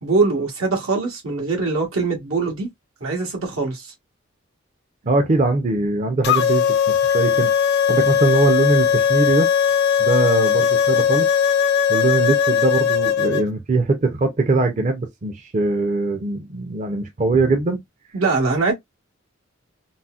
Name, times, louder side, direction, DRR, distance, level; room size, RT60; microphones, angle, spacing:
voice 1, 0.0-2.7 3.0-3.9 18.1-18.7, right 3 dB, 85° right, 1.5 m, -22 dB
voice 2, 5.0-7.5 7.9-9.5 10.0-11.3 11.9-17.8, right 3 dB, 35° right, 0.5 m, -21 dB
sound 1, 6.2-13.4, left 8 dB, 50° left, 0.4 m, -18 dB
4.0 x 2.1 x 2.3 m
head